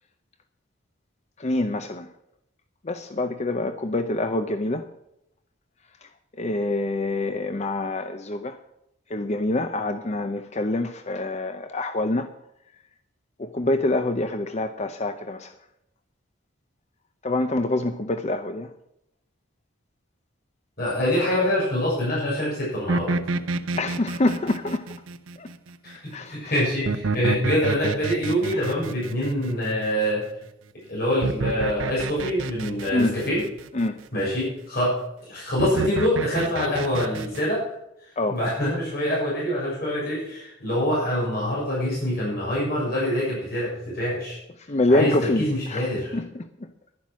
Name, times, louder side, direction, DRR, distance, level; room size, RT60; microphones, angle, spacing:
voice 1, 1.4-2.1 2.9-4.8 6.4-8.6 9.1-12.3 13.4-15.5 17.2-18.7 23.8-24.9 25.4-25.5 26.1-26.4 32.9-33.2 33.7-34.0 38.2-38.4 44.7-45.9 46.1-46.5, left 2 dB, 35° left, 0.6 m, -26 dB
voice 2, 20.8-23.2 25.8-30.3 30.9-33.4 34.1-35.0 35.3-37.6 38.3-44.4 44.9-46.2, equal, 50° left, 6.6 m, -25 dB
sound 1, 22.9-25.7 26.8-30.3 31.2-33.9 35.6-37.4, right 3 dB, 80° right, 0.7 m, -29 dB
11.5 x 10.5 x 6.2 m
head